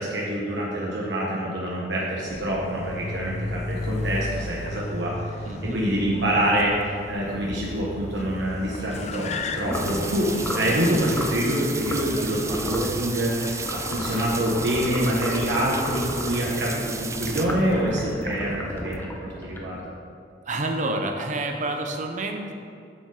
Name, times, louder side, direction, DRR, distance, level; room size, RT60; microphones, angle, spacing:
voice 1, 0.0-5.4 5.7-19.8, right 1 dB, 80° right, -5 dB, 1.2 m, -26 dB
Car, 2.3-19.0, left 2 dB, 40° left, 0.5 m, -36 dB
voice 2, 5.5-5.8 20.5-22.5, right 2 dB, 45° right, 4 dB, 0.9 m, -28 dB
sound 1, 9.6-10.0 10.4-10.7 11.1-11.4 11.8-12.2 12.5-12.9 13.6-16.5 17.1-20.0, left 1 dB, 10° left, 0.8 m, -33 dB
sound 2, 9.7-17.5, right 5 dB, 15° right, 0.4 m, -34 dB
7.5 x 6.8 x 4.9 m, 2.4 s
head